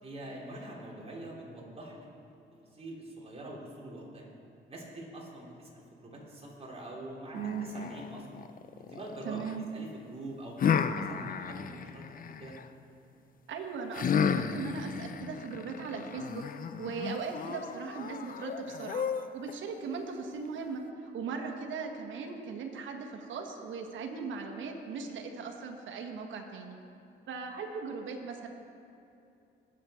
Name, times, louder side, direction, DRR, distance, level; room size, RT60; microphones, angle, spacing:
voice 1, 0.0-2.1 2.7-4.3 4.7-8.4 8.8-9.4 9.7-12.5, right 1 dB, 30° right, -4 dB, 3.5 m, -45 dB
sound 1, 7.3-9.6 10.6-12.7 13.9-19.5, left 7 dB, 45° left, 0.6 m, -33 dB
voice 2, 7.3-7.7 9.2-9.7 13.5-16.4 16.8-19.0 19.3-26.8 27.3-28.5, right 5 dB, 75° right, 3 dB, 1.5 m, -38 dB
20.5 x 7.7 x 4.4 m, 2.6 s
cardioid pair, 90°, 20 cm